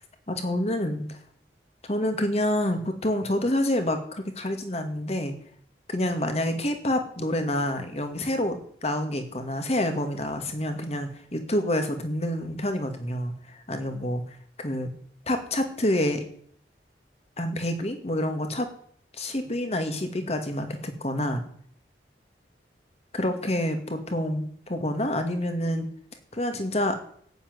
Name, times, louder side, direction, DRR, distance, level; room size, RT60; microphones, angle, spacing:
voice 1, 0.3-1.2 1.8-5.3 5.9-14.9 15.3-16.2 17.4-18.7 19.1-21.4 23.1-25.9 26.3-27.0, left 1 dB, 35° left, 7 dB, 2.3 m, -28 dB
14.5 x 8.8 x 9.6 m, 0.63 s
head